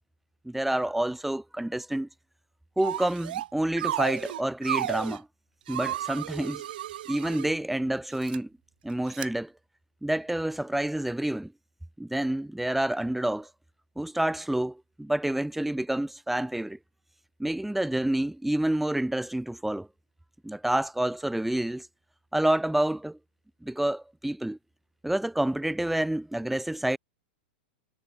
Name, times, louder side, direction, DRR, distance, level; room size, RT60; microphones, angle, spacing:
voice 1, 0.4-2.1 2.8-5.3 5.7-6.6 7.1-8.5 8.8-9.5 10.0-11.5 12.0-13.5 14.0-16.8 17.4-19.9 20.4-21.9 22.3-23.2 23.6-24.6 25.0-27.0, right 1 dB, 5° right, 0.5 m, -28 dB
sound 1, 2.8-3.5 3.8-5.2 5.7-7.5 8.1-8.4 9.1-9.3, right 13 dB, 70° right, 0.9 m, -33 dB
hypercardioid pair, 120°, 5 cm